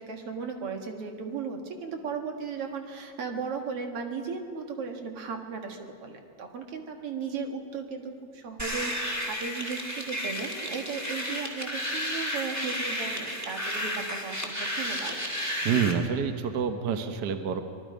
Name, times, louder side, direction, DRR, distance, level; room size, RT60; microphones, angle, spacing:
voice 1, 0.0-15.2, right 5 dB, 55° right, 4 dB, 2.4 m, -36 dB
sound 1, 8.6-15.9, equal, 5° right, 1.6 m, -32 dB
voice 2, 15.6-17.6, right 7 dB, 75° right, 7 dB, 0.9 m, -27 dB
24.5 x 21.0 x 5.2 m, 2.5 s
omnidirectional pair, 3.4 m